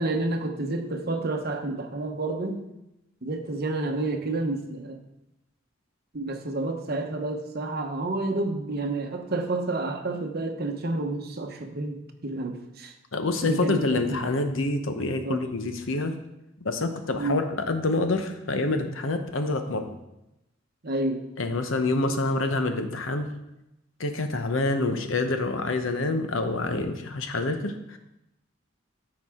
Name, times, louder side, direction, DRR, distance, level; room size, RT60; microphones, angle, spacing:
voice 1, 0.0-2.6 3.2-5.0 6.1-12.9 13.4-14.4 15.2-15.4 17.1-17.4 20.8-21.3, right 2 dB, 50° right, 5 dB, 0.9 m, -30 dB
voice 2, 13.1-16.1 16.6-20.0 21.4-23.3 24.0-28.0, left 2 dB, 80° left, 7 dB, 0.9 m, -27 dB
13.5 x 4.8 x 3.6 m, 0.91 s
head